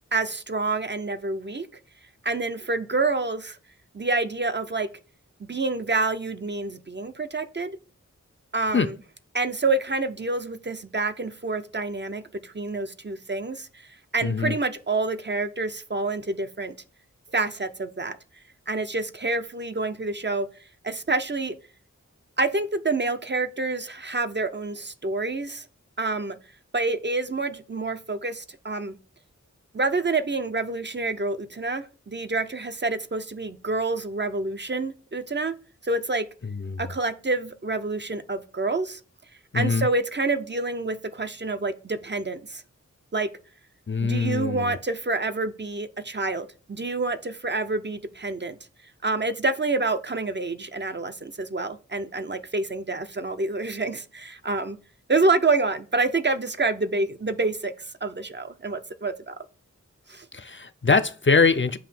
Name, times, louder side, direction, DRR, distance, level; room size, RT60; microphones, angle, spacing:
voice 1, 0.1-1.7 2.2-3.6 3.9-4.9 5.4-7.8 8.5-9.0 9.3-13.9 14.1-16.7 17.3-18.2 18.7-20.5 20.8-21.6 22.4-25.7 26.0-26.4 26.7-29.0 29.7-35.6 35.8-36.3 36.8-39.0 39.5-42.6 43.1-43.3 44.0-48.6 49.0-54.8 55.1-59.4 60.1-60.3, right 3 dB, 35° right, 0.5 m, -27 dB
voice 2, 14.2-14.5 36.4-36.8 39.5-39.9 43.9-44.8 60.3-61.8, left 4 dB, 40° left, 0.5 m, -23 dB
7.1 x 2.7 x 5.8 m
wide cardioid pair, 45°, 31 cm